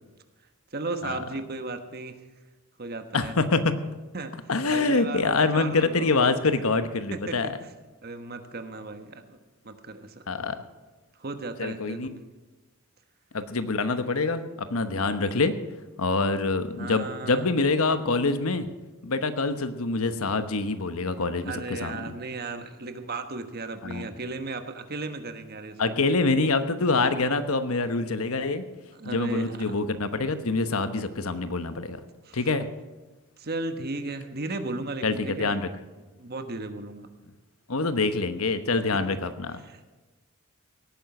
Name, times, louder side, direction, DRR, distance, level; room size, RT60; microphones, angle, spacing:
voice 1, 0.7-2.2 2.8-3.3 4.1-6.3 7.1-7.5 8.0-9.4 9.6-10.2 11.2-12.2 16.8-17.5 21.5-25.9 28.9-29.7 32.2-32.4 33.4-35.6 36.2-37.1 39.6-39.9, right 3 dB, 45° right, 7 dB, 1.3 m, -35 dB
voice 2, 3.1-3.7 4.5-7.5 10.3-10.6 11.6-12.1 13.3-15.5 16.0-18.7 19.0-22.1 23.8-24.1 25.8-28.6 29.0-32.0 32.3-32.7 35.0-35.7 37.7-39.6, left 3 dB, 85° left, 10 dB, 1.1 m, -25 dB
17.5 x 9.2 x 6.0 m, 1.2 s
head